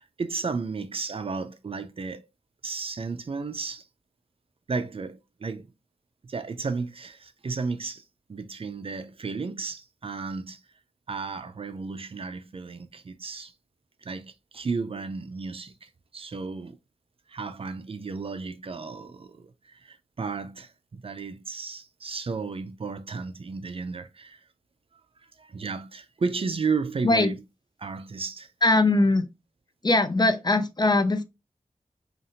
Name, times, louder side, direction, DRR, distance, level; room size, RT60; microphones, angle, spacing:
voice 1, 0.0-2.3 2.6-3.9 4.7-5.7 6.2-10.6 11.1-13.5 14.0-16.8 17.3-24.4 25.4-27.3 27.8-28.5, right 4 dB, 45° right, 0.4 m, -33 dB
voice 2, 28.6-29.3 29.8-31.2, left 2 dB, 35° left, 0.4 m, -21 dB
2.6 x 2.5 x 2.7 m
cardioid pair, 50°, 13 cm